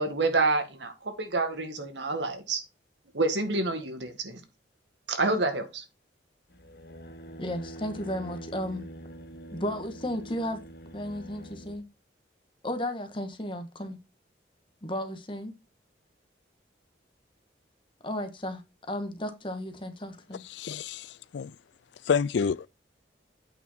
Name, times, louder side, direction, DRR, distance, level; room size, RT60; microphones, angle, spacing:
voice 1, 0.0-2.6 3.1-4.4 5.1-5.8, right 3 dB, 80° right, 1.8 m, -28 dB
sound 1, 6.5-11.8, right 1 dB, 55° left, 1.2 m, -45 dB
voice 2, 7.4-8.8 9.5-10.6 10.9-11.8 12.6-14.0 14.8-15.5 18.0-18.6 18.9-20.4, left 1 dB, 30° left, 1.3 m, -34 dB
voice 3, 20.5-21.5 22.1-22.7, left 6 dB, 75° left, 0.4 m, -28 dB
8.5 x 5.7 x 4.3 m
head